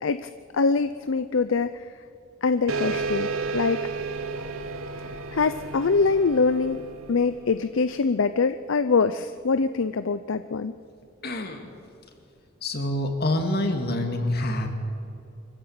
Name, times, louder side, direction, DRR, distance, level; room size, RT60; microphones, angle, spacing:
voice 1, 0.0-1.9 2.4-3.8 5.3-6.8 7.1-10.7, left 4 dB, 70° left, 12 dB, 0.6 m, -24 dB
sound 1, 2.7-7.8, right 4 dB, 80° right, 1.3 m, -32 dB
voice 2, 11.2-11.7 12.6-14.7, left 1 dB, 50° left, 5 dB, 2.5 m, -26 dB
24.5 x 15.0 x 8.7 m, 2.6 s
head